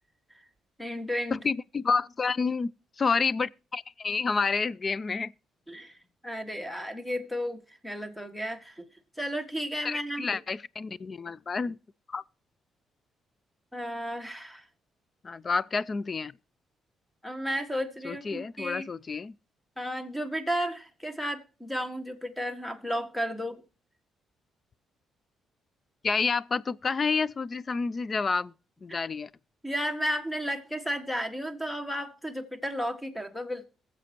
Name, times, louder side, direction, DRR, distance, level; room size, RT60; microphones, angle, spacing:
voice 1, 0.8-1.4 5.7-6.0 6.2-8.9 9.2-10.4 13.7-14.6 17.2-18.9 19.8-23.6 29.6-33.7, equal, 5° left, 1.6 m, -33 dB
voice 2, 1.3-2.7 3.0-5.3 9.8-11.8 12.1-12.2 15.2-16.3 18.0-19.3 26.0-28.5 28.8-29.3, left 4 dB, 35° left, 0.4 m, -29 dB
22.0 x 7.5 x 2.9 m
cardioid pair, 90°, 0 cm